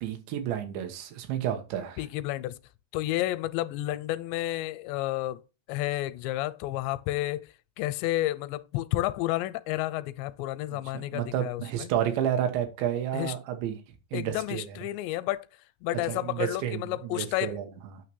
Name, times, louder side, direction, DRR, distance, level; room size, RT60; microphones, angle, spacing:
voice 1, 0.0-2.0 10.7-13.8 14.1-14.8 16.1-17.7, right 10 dB, 85° right, 3.4 m, -31 dB
voice 2, 2.0-2.6 2.9-5.4 5.7-7.5 7.8-11.9 13.1-13.3 14.1-15.5 15.8-17.6, left 16 dB, 85° left, 2.8 m, -31 dB
9.0 x 3.1 x 6.2 m
omnidirectional pair, 5.0 m